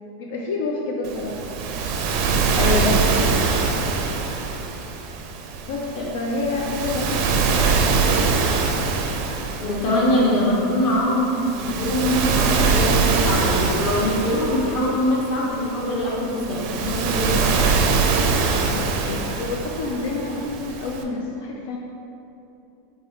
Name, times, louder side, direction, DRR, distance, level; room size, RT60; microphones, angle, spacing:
voice 1, 0.2-1.7 5.6-8.5 18.7-21.8, left 3 dB, 75° left, -2 dB, 0.4 m, -29 dB
Waves surf, 1.0-21.0, right 4 dB, 50° right, 0.4 m, -23 dB
voice 2, 2.5-2.9 5.9-6.1 9.6-17.7, left 1 dB, 40° left, -5 dB, 1.1 m, -23 dB
4.6 x 3.6 x 3.2 m, 2.9 s
supercardioid pair, 155°, 0 cm